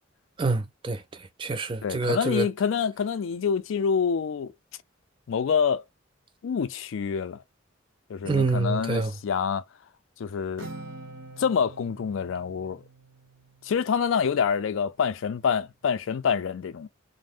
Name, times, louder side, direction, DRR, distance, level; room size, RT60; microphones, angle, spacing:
voice 1, 0.4-1.0 1.4-2.5 8.3-9.1, right 3 dB, 25° right, 0.4 m, -26 dB
voice 2, 1.8-4.5 5.3-5.8 6.4-7.4 8.1-9.6 10.2-10.7 11.4-12.8 13.6-16.9, left 6 dB, 75° left, 0.4 m, -26 dB
Acoustic guitar, 10.6-14.2, right 2 dB, 70° right, 0.8 m, -45 dB
2.5 x 2.1 x 3.4 m
head